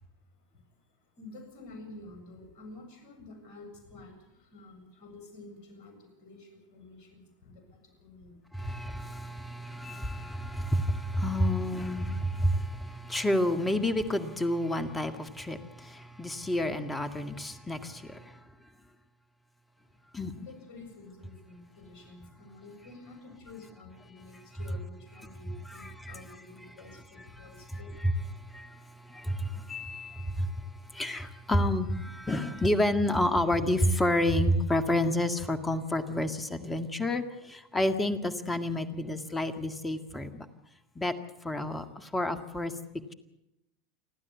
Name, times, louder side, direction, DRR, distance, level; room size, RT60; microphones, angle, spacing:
voice 1, 0.5-8.7 20.3-28.5, left 2 dB, 50° left, 5 dB, 7.5 m, -50 dB
voice 2, 8.5-18.4 20.1-20.3 24.3-24.4 25.7-26.2 27.4-40.5 41.0-41.1 41.4-42.7, left 1 dB, 10° left, 9 dB, 1.9 m, -30 dB
29.0 x 12.0 x 8.4 m, 0.89 s
figure-of-eight pair, 85°, 0 cm